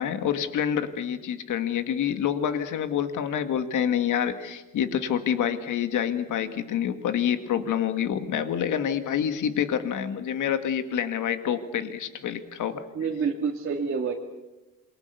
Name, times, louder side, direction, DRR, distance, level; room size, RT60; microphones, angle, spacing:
voice 1, 0.0-12.8, left 9 dB, 65° left, 9 dB, 2.1 m, -27 dB
voice 2, 12.9-14.1, right 5 dB, 35° right, 0 dB, 2.1 m, -27 dB
27.5 x 23.5 x 7.0 m, 1.1 s
cardioid pair, 145°, 34 cm